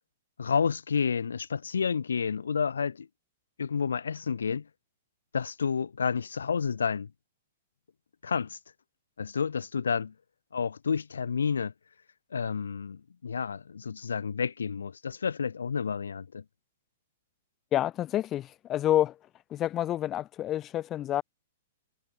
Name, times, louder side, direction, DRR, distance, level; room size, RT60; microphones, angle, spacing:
voice 1, 0.4-3.1 3.6-4.6 5.3-7.1 8.2-8.6 9.2-10.1 10.5-11.7 12.3-16.4, left 6 dB, 80° left, 3.4 m, -30 dB
voice 2, 17.7-19.2 19.5-21.2, left 12 dB, 30° left, 4.3 m, -28 dB
hypercardioid pair, 115°, 0 cm